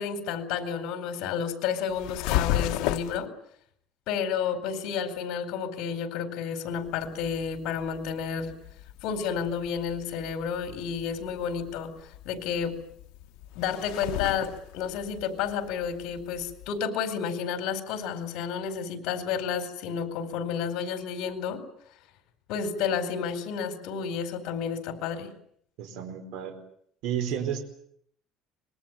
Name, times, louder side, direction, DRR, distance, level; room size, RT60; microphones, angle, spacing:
voice 1, 0.0-3.3 4.1-8.5 9.0-12.7 13.5-21.6 22.5-25.3, left 7 dB, 65° left, 9 dB, 4.5 m, -31 dB
sound 1, 1.9-3.2 6.7-16.8, left 13 dB, 85° left, 1.4 m, -35 dB
voice 2, 25.8-26.6 27.0-27.6, right 9 dB, 75° right, 5 dB, 4.6 m, -31 dB
25.5 x 21.0 x 9.1 m, 0.67 s
cardioid pair, 160°, 0 cm